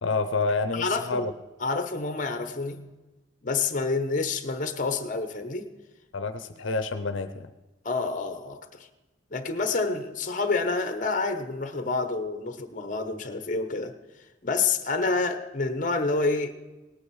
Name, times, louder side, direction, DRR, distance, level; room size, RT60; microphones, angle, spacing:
voice 1, 0.0-1.3 6.1-7.5, left 3 dB, 90° left, 10 dB, 0.7 m, -28 dB
voice 2, 0.7-1.3 1.6-2.9 3.4-5.7 7.8-8.9 9.3-14.0 14.4-16.6, left 3 dB, 45° left, 9 dB, 1.0 m, -28 dB
18.5 x 8.7 x 4.8 m, 1.1 s
head